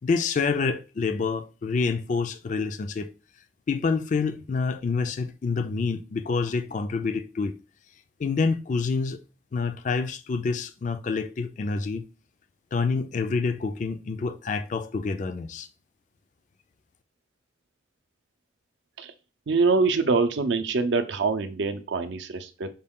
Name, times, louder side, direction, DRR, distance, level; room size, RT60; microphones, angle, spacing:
voice 1, 0.0-3.1 3.7-7.6 8.2-9.2 9.5-12.0 12.7-15.7, left 4 dB, 40° left, 0.3 m, -27 dB
voice 2, 19.5-22.7, right 4 dB, 65° right, 0.5 m, -24 dB
5.3 x 2.3 x 3.6 m
head